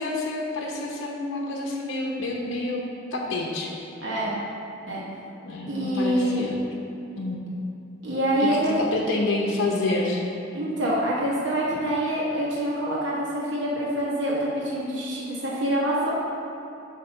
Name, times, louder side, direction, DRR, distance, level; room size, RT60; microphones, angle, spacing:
voice 1, 0.0-2.8 3.1-3.7 5.4-6.6 7.2-7.4 8.4-10.2, left 2 dB, 90° left, -2 dB, 0.8 m, -28 dB
voice 2, 4.0-4.3 4.9-5.0 5.7-6.4 8.0-8.8 10.5-16.1, right 1 dB, 65° right, -6 dB, 1.2 m, -26 dB
8.2 x 2.9 x 5.9 m, 2.8 s
head